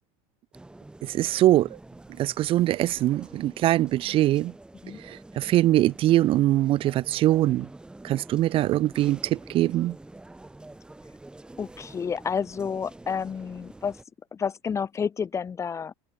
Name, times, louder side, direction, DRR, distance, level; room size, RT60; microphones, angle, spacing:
sound 1, 0.5-14.0, right 2 dB, 5° right, 4.4 m, -47 dB
voice 1, 1.0-1.8 2.2-4.5 5.0-7.7 8.0-10.0, right 14 dB, 40° right, 1.0 m, -22 dB
voice 2, 11.6-14.0 14.3-15.9, left 6 dB, 20° left, 2.3 m, -30 dB
open air
cardioid pair, 150°, 14 cm